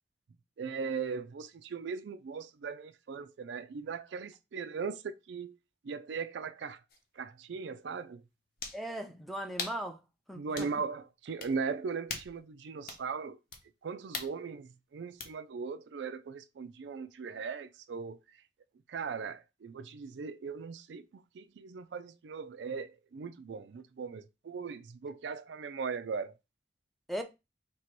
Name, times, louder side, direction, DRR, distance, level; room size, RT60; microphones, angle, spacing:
voice 1, 0.6-5.6 5.8-6.8 7.2-8.2 10.3-13.4 13.8-18.2 18.9-26.3, right 5 dB, 75° right, 0.4 m, -39 dB
sound 1, 6.9-7.0 8.6-8.8 9.6-9.8 10.5-10.8 11.4-11.5 12.1-12.4 12.9-13.0 13.5-13.6 14.1-14.3 15.2-15.3, left 4 dB, 55° left, 0.9 m, -40 dB
voice 2, 8.7-10.0 10.3-10.7 27.1-27.2, equal, ahead, 0.5 m, -38 dB
3.0 x 2.9 x 4.4 m
head